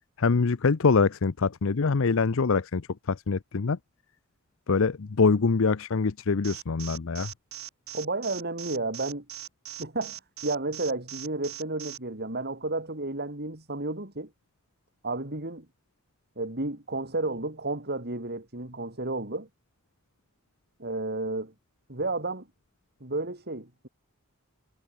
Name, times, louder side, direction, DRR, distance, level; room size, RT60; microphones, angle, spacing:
voice 1, 0.2-3.8 4.7-7.3, left 4 dB, 65° left, 0.6 m, -24 dB
Alarm, 6.4-12.0, right 12 dB, 75° right, 6.1 m, -40 dB
voice 2, 7.9-9.2 9.8-14.3 15.0-15.7 16.4-19.5 20.8-21.5 21.9-22.5 23.0-23.9, right 2 dB, 50° right, 4.0 m, -32 dB
head